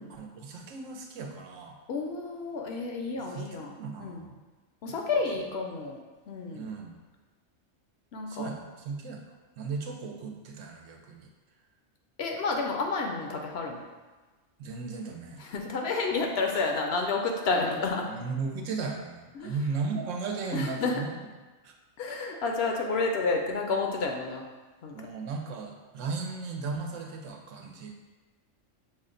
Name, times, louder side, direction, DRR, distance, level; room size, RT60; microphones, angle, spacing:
voice 1, 0.1-1.8 3.1-4.4 4.9-5.1 6.5-7.0 8.3-9.2 9.6-11.3 14.6-15.4 18.1-21.2 21.6-21.7 24.9-27.9, right 4 dB, 85° right, 1 dB, 1.0 m, -36 dB
voice 2, 1.9-3.7 4.0-4.2 4.8-6.0 6.3-6.7 8.1-8.5 12.2-13.8 15.4-18.1 19.4-19.5 20.5-20.9 22.0-24.4 24.8-25.0, left 3 dB, 65° left, 1 dB, 0.7 m, -30 dB
6.2 x 2.1 x 3.8 m, 1.3 s
omnidirectional pair, 1.3 m